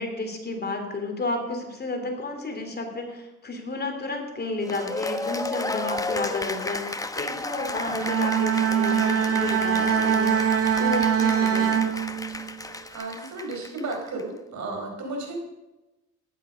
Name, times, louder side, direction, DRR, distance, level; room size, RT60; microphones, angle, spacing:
voice 1, 0.0-10.5 10.8-11.8, left 2 dB, 35° left, 4 dB, 3.2 m, -32 dB
Cheering / Applause, 4.6-14.2, left 2 dB, 10° left, 1.0 m, -33 dB
Bowed string instrument, 7.9-12.6, right 8 dB, 50° right, 1.5 m, -23 dB
voice 2, 12.9-15.3, right 2 dB, 70° right, 2 dB, 4.9 m, -33 dB
14.0 x 11.0 x 5.2 m, 1.0 s
cardioid pair, 90°, 30 cm